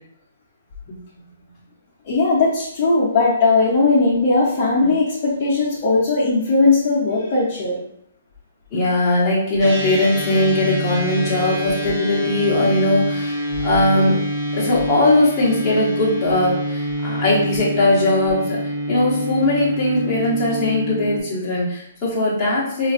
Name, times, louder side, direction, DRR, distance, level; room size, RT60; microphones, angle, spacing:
voice 1, 2.1-7.8, left 3 dB, 35° left, -8 dB, 0.8 m, -18 dB
voice 2, 8.7-14.2 14.5-22.9, left 2 dB, 15° left, -8 dB, 1.1 m, -19 dB
sound 1, 9.6-21.2, right 1 dB, 25° right, 1.0 m, -26 dB
4.9 x 2.5 x 2.5 m, 0.72 s
hypercardioid pair, 165°, 0 cm